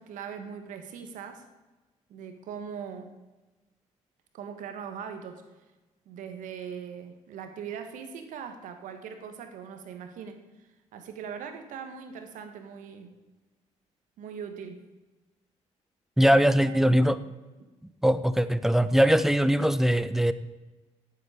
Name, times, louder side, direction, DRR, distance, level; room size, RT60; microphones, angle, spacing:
voice 1, 0.0-1.5 2.1-3.2 4.3-5.4 6.0-13.1 14.2-14.8 16.2-17.1 17.6-17.7, right 7 dB, 75° right, 7 dB, 1.7 m, -41 dB
voice 2, 16.2-17.2 18.0-20.3, equal, 5° right, 14 dB, 0.7 m, -21 dB
8.7 x 8.6 x 8.4 m, 1.2 s
cardioid pair, 85°, 13 cm